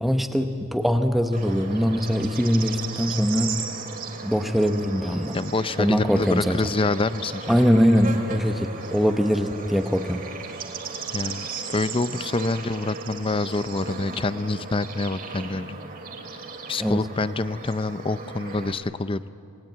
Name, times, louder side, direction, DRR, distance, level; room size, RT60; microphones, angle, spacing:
voice 1, 0.0-3.6 4.2-5.4 5.8-6.6 7.5-10.2 16.8-17.0, equal, ahead, 6 dB, 0.8 m, -22 dB
Bird / Insect, 1.3-18.7, right 4 dB, 40° right, 2.4 m, -36 dB
voice 2, 5.3-7.6 11.1-15.8 16.7-19.2, left 3 dB, 25° left, 15 dB, 0.5 m, -26 dB
27.0 x 19.5 x 9.1 m, 2.6 s
head